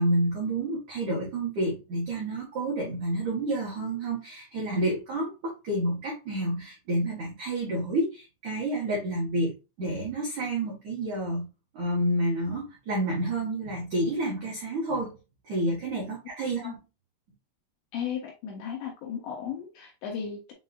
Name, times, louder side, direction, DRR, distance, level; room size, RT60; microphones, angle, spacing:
voice 1, 0.0-11.5 11.7-15.2 15.4-16.8, right 1 dB, 80° right, -4 dB, 1.6 m, -29 dB
voice 2, 17.9-20.5, left 8 dB, 75° left, 0 dB, 2.7 m, -35 dB
7.3 x 2.6 x 2.3 m, 0.28 s
omnidirectional pair, 5.7 m